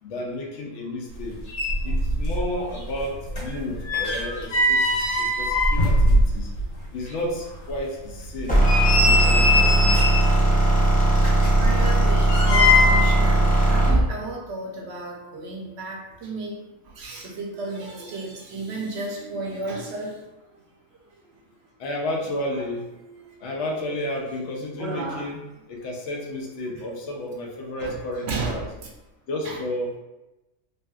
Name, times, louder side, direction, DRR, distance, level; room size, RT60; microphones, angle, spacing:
voice 1, 0.0-1.4 1.8-6.5 6.9-8.6 9.0-10.2 21.8-22.8 23.4-25.4 25.7-28.6 29.3-29.9, left 1 dB, 70° left, 0 dB, 0.9 m, -32 dB
sound 1, 1.2-1.3 1.5-2.5 2.8-6.7 7.1-7.2 7.7-7.8 8.4-10.3 11.2-13.2 13.4-13.6, left 2 dB, 90° left, 1.5 m, -21 dB
sound 2, 8.5-14.0, right 2 dB, 15° left, 0.3 m, -18 dB
voice 2, 11.6-16.6 16.8-20.2 20.5-20.6 22.5-22.6 23.0-23.3 24.8-25.3 26.7-26.8 27.8-28.0 28.3-28.7 29.4-29.6, right 3 dB, 65° right, 0 dB, 0.8 m, -33 dB
3.0 x 2.7 x 2.3 m, 1.0 s
omnidirectional pair, 1.3 m